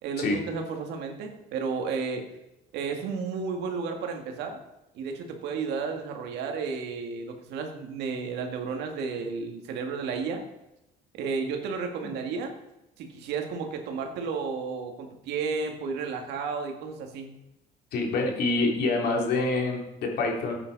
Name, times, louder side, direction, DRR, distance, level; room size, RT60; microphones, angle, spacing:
voice 1, 0.0-2.2 2.7-4.6 4.9-10.4 11.1-12.5 13.0-17.3, right 5 dB, 85° right, 3 dB, 2.1 m, -32 dB
voice 2, 17.9-20.6, left 3 dB, 70° left, 0 dB, 3.2 m, -26 dB
14.0 x 8.9 x 4.1 m, 0.93 s
cardioid pair, 110°, 17 cm